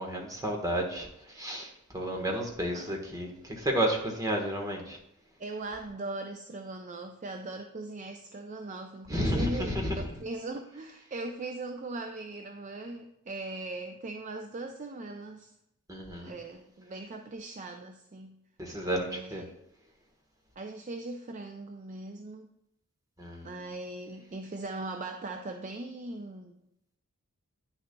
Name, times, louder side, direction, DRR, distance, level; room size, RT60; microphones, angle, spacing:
voice 1, 0.0-5.0 9.1-10.1 15.9-16.3 18.6-19.5 23.2-23.6, right 1 dB, 15° right, 1 dB, 1.2 m, -32 dB
voice 2, 5.4-15.5 16.1-18.4 19.1-19.4 20.6-22.5 23.4-26.6, right 2 dB, 35° right, 5 dB, 0.4 m, -39 dB
9.7 x 6.5 x 2.2 m, 0.83 s
head